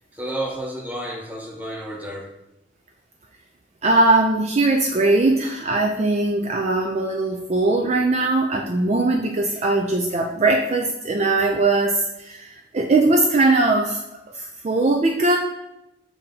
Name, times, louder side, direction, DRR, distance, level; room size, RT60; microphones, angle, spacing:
voice 1, 0.1-2.3, right 1 dB, 10° right, 1 dB, 0.8 m, -31 dB
voice 2, 3.8-14.0 14.3-15.4, right 2 dB, 35° right, 2 dB, 0.4 m, -20 dB
7.2 x 2.8 x 5.2 m, 0.90 s
head